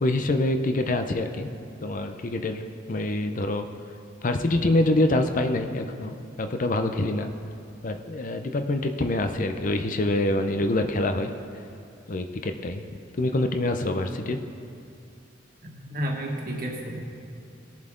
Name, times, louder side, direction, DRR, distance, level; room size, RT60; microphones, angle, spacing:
voice 1, 0.0-1.5 1.8-3.7 4.2-7.3 7.8-11.3 12.1-12.8 13.2-14.4, left 2 dB, 45° left, 6 dB, 0.6 m, -25 dB
voice 2, 15.6-17.0, equal, 50° right, 0 dB, 1.6 m, -31 dB
19.0 x 7.2 x 3.8 m, 2.6 s
head